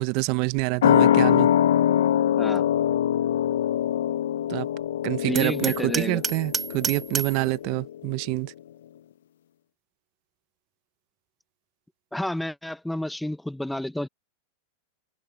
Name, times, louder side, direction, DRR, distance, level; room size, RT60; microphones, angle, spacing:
voice 1, 0.0-1.5 4.5-4.7 5.0-8.5, right 25 dB, 50° right, 0.6 m, -27 dB
sound 1, 0.8-7.9 8.2-8.3, left 10 dB, 85° left, 0.6 m, -23 dB
voice 2, 5.3-6.2 12.1-14.1, left 1 dB, 5° left, 0.6 m, -30 dB
Hammer, 5.4-7.4, right 7 dB, 25° right, 2.7 m, -30 dB
open air
supercardioid pair, 130°, 0 cm